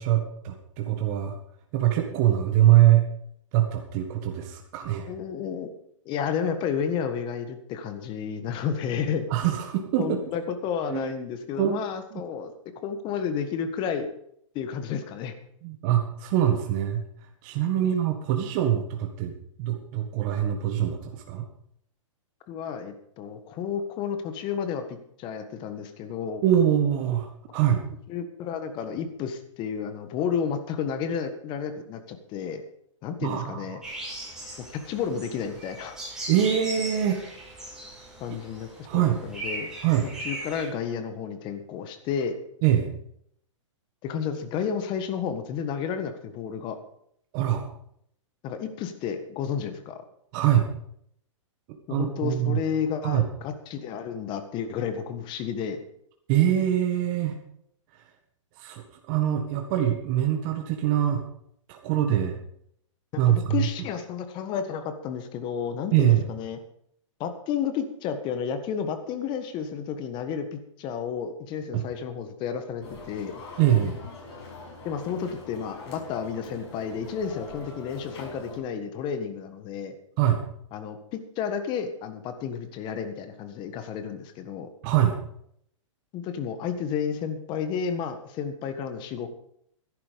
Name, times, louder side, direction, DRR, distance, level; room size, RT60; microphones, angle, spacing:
voice 1, 0.0-1.3 1.7-3.1 3.5-5.1 9.3-10.2 10.9-11.1 11.6-11.8 12.1-12.2 15.6-17.0 17.4-19.3 19.6-21.5 26.4-27.8 33.2-33.8 36.3-37.2 38.8-39.2 39.8-40.1 42.6-42.9 47.3-47.6 50.3-50.7 51.9-52.6 53.0-53.3 56.3-57.3 58.6-61.2 61.7-62.4 63.2-63.7 65.9-66.2 71.7-71.8 73.6-74.0 80.2-80.4 84.8-85.1, right 11 dB, 40° right, 3 dB, 1.7 m, -23 dB
voice 2, 5.1-5.7 6.0-9.2 10.0-12.5 12.8-14.1 14.5-15.4 17.8-17.9 22.5-26.4 28.1-32.6 33.0-33.8 34.7-36.0 38.2-39.7 40.2-42.4 44.0-46.8 48.4-50.0 51.9-55.8 63.1-66.6 67.2-73.4 74.8-79.9 80.7-84.7 86.1-89.3, left 7 dB, 30° left, 9 dB, 1.5 m, -31 dB
sound 1, 33.8-40.7, right 1 dB, 5° right, 6.1 m, -38 dB
sound 2, 72.8-78.6, left 3 dB, 55° left, 6.3 m, -43 dB
13.0 x 11.5 x 5.2 m, 0.68 s
hypercardioid pair, 145°, 16 cm